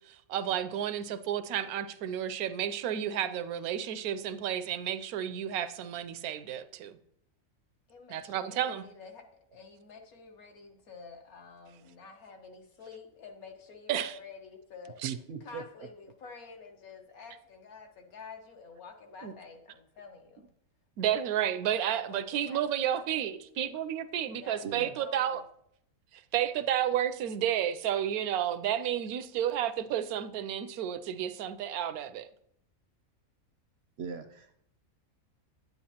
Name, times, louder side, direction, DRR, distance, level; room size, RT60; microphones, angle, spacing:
voice 1, 0.1-6.9 8.1-8.8 13.9-14.1 15.0-15.1 19.2-19.3 21.0-25.4 26.3-32.3, right 10 dB, 90° right, 12 dB, 1.1 m, -31 dB
voice 2, 7.9-9.2 9.5-15.0 15.4-20.5 21.0-21.3 21.7-22.7 24.3-25.4, left 5 dB, 80° left, 3 dB, 1.6 m, -49 dB
voice 3, 15.0-15.6 24.6-25.0 34.0-34.6, right 6 dB, 65° right, 7 dB, 0.6 m, -39 dB
9.5 x 9.0 x 2.8 m, 0.72 s
omnidirectional pair, 1.5 m